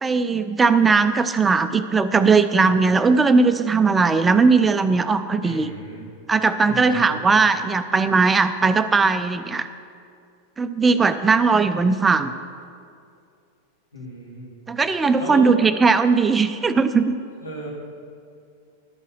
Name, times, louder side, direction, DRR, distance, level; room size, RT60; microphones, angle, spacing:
voice 1, 0.0-5.7 6.3-9.7 10.6-12.3 14.7-17.2, right 4 dB, 15° right, 11 dB, 0.4 m, -18 dB
voice 2, 5.4-6.0 6.7-7.2 13.9-14.5 15.2-15.5 17.4-17.7, equal, 85° left, -5 dB, 2.8 m, -34 dB
11.5 x 5.5 x 7.6 m, 2.4 s
figure-of-eight pair, 90°, 0 cm